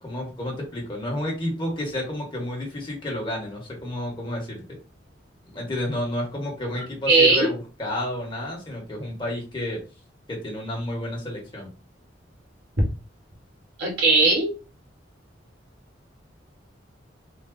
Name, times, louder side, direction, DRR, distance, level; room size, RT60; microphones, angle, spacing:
voice 1, 0.0-4.6 5.5-9.8 10.3-11.7, left 1 dB, 25° left, -1 dB, 1.5 m, -31 dB
voice 2, 7.1-7.5 13.8-14.5, right 3 dB, 65° right, -1 dB, 1.6 m, -18 dB
4.0 x 2.3 x 3.8 m, 0.31 s
head